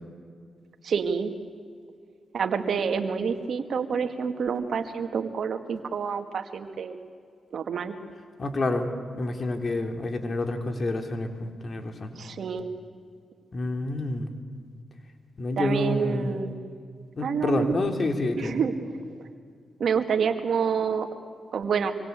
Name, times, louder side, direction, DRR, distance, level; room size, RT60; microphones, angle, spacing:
voice 1, 0.8-1.3 2.3-7.0 7.5-7.9 12.2-12.7 15.6-16.5 17.2-17.7 18.4-19.3 19.8-21.1 21.5-21.9, right 6 dB, 70° right, 7 dB, 2.2 m, -28 dB
voice 2, 8.4-8.9 9.1-12.1 13.5-14.3 15.4-16.4 17.2-18.6, left 2 dB, 50° left, 5 dB, 3.6 m, -28 dB
26.5 x 25.0 x 8.5 m, 2.2 s
supercardioid pair, 50°, 0 cm